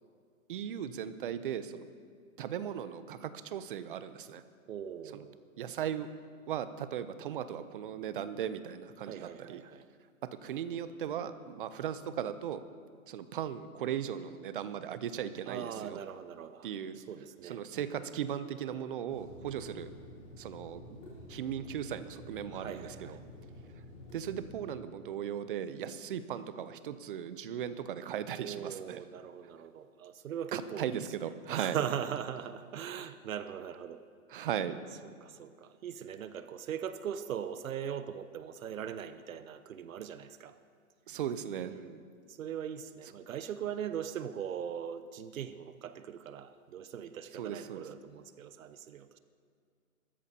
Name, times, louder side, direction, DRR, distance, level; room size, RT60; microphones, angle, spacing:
voice 1, 0.5-1.9 2.4-4.4 5.6-6.1 6.5-9.6 10.4-12.6 13.1-16.0 16.6-17.0 17.5-19.9 20.4-20.8 21.3-22.9 24.1-29.0 30.5-31.8 34.3-34.8 41.1-41.7 47.4-47.8, right 9 dB, 40° right, 12 dB, 0.6 m, -37 dB
voice 2, 4.7-5.4 9.0-9.9 15.5-18.2 22.5-23.2 28.4-31.2 31.5-34.0 34.4-34.6 35.0-40.6 41.6-49.2, right 9 dB, 70° right, 12 dB, 0.8 m, -40 dB
Water tap faucet / Sink (filling or washing), 19.1-24.6, left 1 dB, 15° left, 4.5 m, -50 dB
23.0 x 14.0 x 2.9 m, 2.1 s
hypercardioid pair, 155°, 42 cm